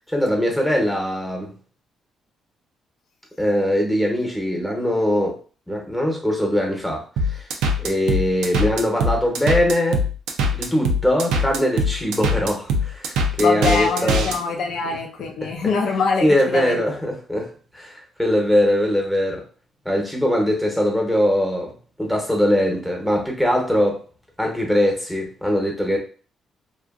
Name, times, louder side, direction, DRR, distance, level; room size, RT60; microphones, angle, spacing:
voice 1, 0.1-1.6 3.4-5.4 5.7-7.5 7.8-10.0 10.5-14.3 15.4-15.5 16.2-19.4 19.8-24.0 24.4-26.0, equal, 5° left, 0 dB, 0.9 m, -21 dB
sound 1, 7.2-14.4, equal, 90° right, 0.4 m, -22 dB
voice 2, 13.4-16.8, left 4 dB, 70° left, 2 dB, 0.5 m, -23 dB
2.8 x 2.4 x 2.4 m, 0.38 s
cardioid pair, 90°, 0 cm